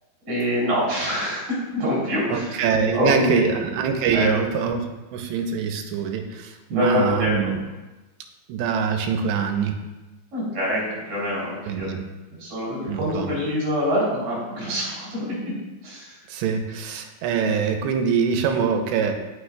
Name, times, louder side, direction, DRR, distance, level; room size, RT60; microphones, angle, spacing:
voice 1, 0.2-2.5 2.9-3.6 4.1-4.4 6.7-7.5 10.3-12.0 12.4-15.5 15.8-16.2, left 1 dB, 50° right, -5 dB, 4.9 m, -25 dB
voice 2, 2.3-4.9 5.1-7.6 8.5-9.8 11.7-12.0 12.9-13.3 16.3-19.1, right 6 dB, 85° right, 5 dB, 2.9 m, -24 dB
18.0 x 6.2 x 2.4 m, 1.1 s
omnidirectional pair, 5.1 m